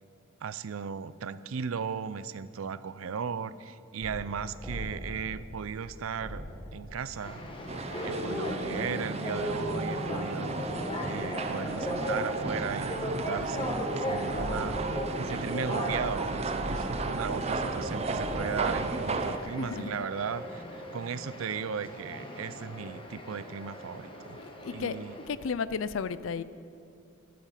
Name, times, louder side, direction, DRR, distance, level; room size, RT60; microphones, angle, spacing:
voice 1, 0.4-7.5 8.0-14.9 15.2-24.4 24.7-25.2, right 6 dB, 85° right, 16 dB, 0.5 m, -36 dB
sound 1, 4.0-7.7 14.3-19.2, equal, 5° left, 1.9 m, -42 dB
sound 2, 7.2-25.3, equal, 25° left, 1.6 m, -37 dB
sound 3, 7.7-19.4, right 3 dB, 30° right, 0.6 m, -34 dB
voice 2, 19.6-20.0 24.4-25.0 25.3-26.4, left 5 dB, 70° left, 16 dB, 0.4 m, -34 dB
12.5 x 12.0 x 5.8 m, 2.5 s
head